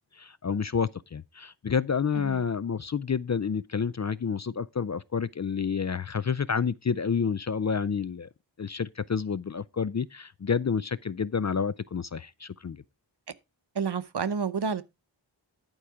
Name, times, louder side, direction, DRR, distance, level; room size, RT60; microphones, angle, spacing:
voice 1, 0.1-8.3 8.6-12.8, left 6 dB, 40° left, 0.4 m, -29 dB
voice 2, 13.7-14.8, right 5 dB, 60° right, 0.8 m, -29 dB
11.5 x 4.7 x 4.8 m
wide cardioid pair, 45°, 46 cm